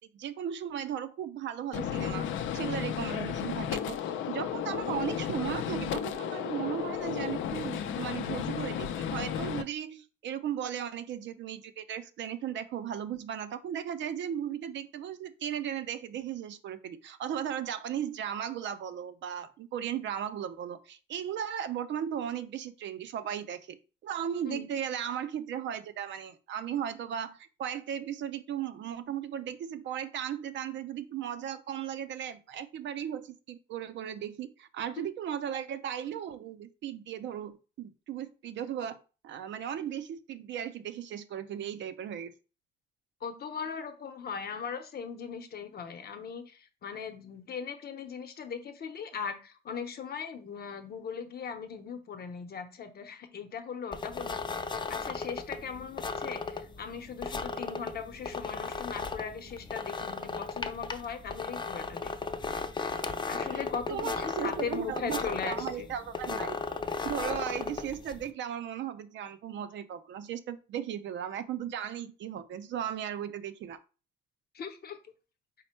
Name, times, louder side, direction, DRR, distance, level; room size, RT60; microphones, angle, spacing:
voice 1, 0.1-4.0 4.3-23.8 24.0-39.0 39.2-42.3 63.5-63.6 63.9-66.6 67.0-73.8, right 9 dB, 65° right, 11 dB, 0.5 m, -36 dB
Gunshot gunfire, 1.7-9.6, left 9 dB, 75° left, 0.5 m, -33 dB
voice 2, 43.2-54.4 54.9-62.1 63.3-65.9 74.5-75.0, left 6 dB, 50° left, 7 dB, 0.8 m, -39 dB
sound 1, 53.9-68.3, left 4 dB, 25° left, 0.4 m, -36 dB
4.2 x 2.1 x 4.3 m, 0.34 s
cardioid pair, 90°, 20 cm